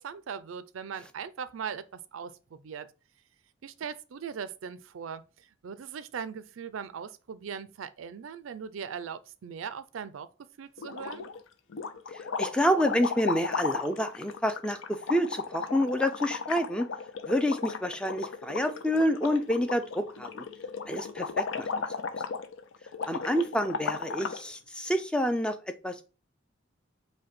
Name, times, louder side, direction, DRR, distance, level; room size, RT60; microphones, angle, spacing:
voice 1, 0.0-2.9 3.6-10.3 10.6-11.3, right 7 dB, 80° right, 0.4 m, -39 dB
sound 1, 10.8-11.4 11.7-24.5, left 5 dB, 75° left, 0.5 m, -35 dB
voice 2, 12.4-16.9 17.3-20.4 20.9-21.7 23.1-25.6 25.8-26.0, equal, 5° left, 0.4 m, -28 dB
5.1 x 2.2 x 4.2 m
head